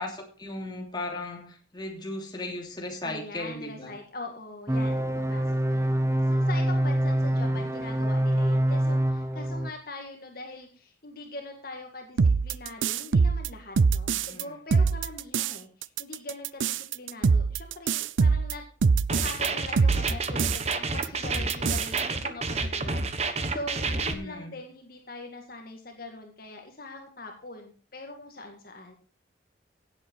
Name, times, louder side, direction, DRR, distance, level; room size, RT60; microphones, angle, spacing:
voice 1, 0.0-4.0 7.2-7.7 14.1-14.5 23.9-24.6, left 2 dB, 25° left, 1 dB, 3.0 m, -37 dB
voice 2, 3.0-6.0 6.2-18.6 19.2-28.9, left 2 dB, 50° left, 3 dB, 2.0 m, -42 dB
sound 1, 4.7-9.7, right 1 dB, 15° right, 0.7 m, -25 dB
sound 2, 12.2-14.4 14.7-15.5 15.8-19.5 19.8-20.7 21.0-21.1 21.3-22.0, right 5 dB, 90° right, 0.5 m, -24 dB
sound 3, 19.1-24.1, right 3 dB, 35° right, 1.2 m, -29 dB
17.0 x 8.1 x 4.6 m, 0.38 s
head